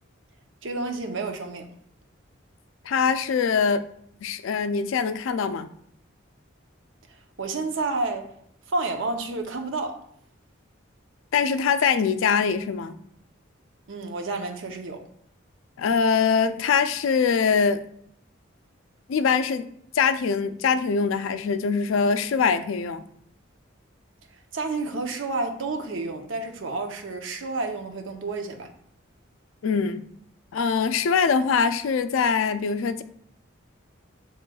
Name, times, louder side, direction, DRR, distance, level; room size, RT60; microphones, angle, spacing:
voice 1, 0.6-1.7 7.4-8.3 8.7-10.0 13.9-15.0 24.5-28.7, right 3 dB, 70° right, 0.7 m, -30 dB
voice 2, 2.9-3.8 4.2-5.7 11.3-13.0 15.8-17.8 19.1-19.7 19.9-23.0 29.6-30.1 30.5-33.0, left 6 dB, 80° left, 0.4 m, -23 dB
7.4 x 3.0 x 2.3 m
head